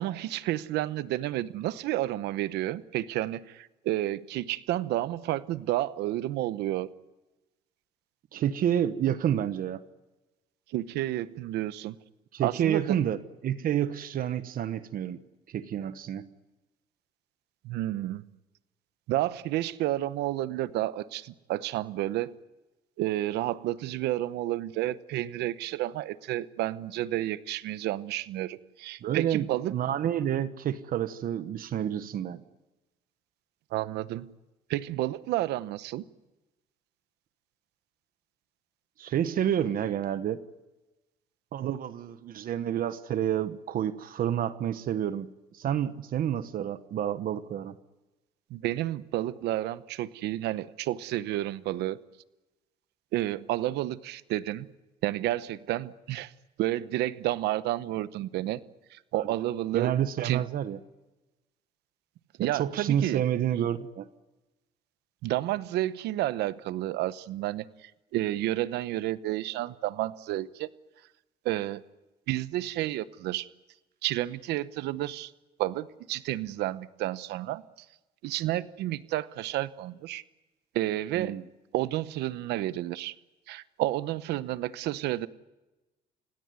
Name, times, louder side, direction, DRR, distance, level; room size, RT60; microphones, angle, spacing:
voice 1, 0.0-6.9 10.7-11.9 12.4-13.0 17.6-18.3 19.1-22.3 23.0-29.7 33.7-34.3 34.7-36.0 48.5-52.0 53.1-54.7 55.0-56.3 56.6-58.6 58.9-59.9 60.2-60.4 62.4-63.2 65.2-70.7 71.4-71.8 72.3-73.5 74.0-75.3 75.6-77.6 78.2-80.2 80.7-81.4 81.7-83.1 83.5-85.3, right 15 dB, 85° right, 15 dB, 0.9 m, -31 dB
voice 2, 8.3-9.8 12.3-15.2 15.5-16.3 29.0-32.4 39.0-40.4 41.5-45.3 45.5-47.8 59.1-59.2 59.7-60.8 62.4-64.1 81.2-81.4, right 10 dB, 60° right, 12 dB, 1.1 m, -29 dB
29.5 x 17.0 x 9.6 m, 1.1 s
cardioid pair, 110°, 17 cm